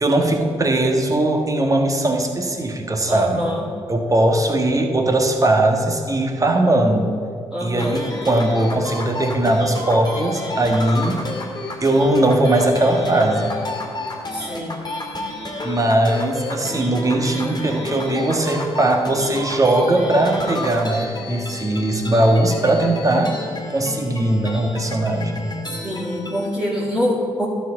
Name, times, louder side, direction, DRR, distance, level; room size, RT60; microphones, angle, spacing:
voice 1, 0.0-3.4 3.9-7.2 7.6-11.2 11.8-13.6 15.6-23.4 23.7-25.4, right 1 dB, 25° right, 3 dB, 1.6 m, -19 dB
voice 2, 3.1-3.7 7.5-8.0 14.3-14.8 25.8-27.5, equal, 5° right, -7 dB, 2.2 m, -25 dB
sound 1, 7.8-26.5, left 2 dB, 30° left, 2.2 m, -31 dB
12.0 x 4.6 x 7.2 m, 2.3 s
hypercardioid pair, 45°, 13 cm